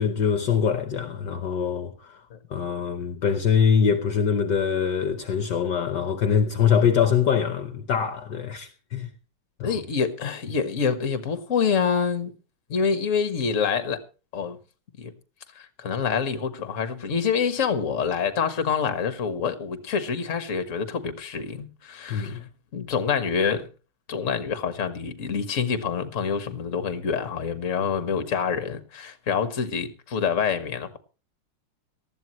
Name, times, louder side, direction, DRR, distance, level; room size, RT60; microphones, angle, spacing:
voice 1, 0.0-2.1 2.5-9.1 9.6-9.7 22.1-22.4, left 7 dB, 60° left, 1.5 m, -23 dB
voice 2, 9.6-12.3 12.7-14.0 14.3-14.6 15.0-15.1 15.5-22.4 22.7-23.7 24.1-31.0, left 6 dB, 40° left, 1.6 m, -26 dB
18.5 x 13.5 x 3.1 m
omnidirectional pair, 2.3 m